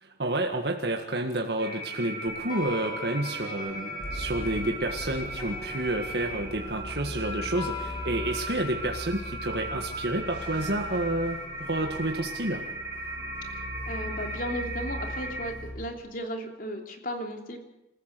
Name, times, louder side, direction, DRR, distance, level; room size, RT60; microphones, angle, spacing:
voice 1, 0.0-12.6, right 1 dB, 65° right, 2 dB, 1.8 m, -30 dB
sound 1, 1.6-15.5, right 1 dB, 10° right, 4.8 m, -37 dB
sound 2, 2.3-8.5, left 3 dB, 25° left, 2.0 m, -43 dB
sound 3, 4.0-15.9, left 1 dB, 85° left, 6.9 m, -40 dB
voice 2, 13.5-17.6, equal, 50° left, 4 dB, 3.1 m, -35 dB
27.0 x 14.5 x 6.8 m, 0.96 s
head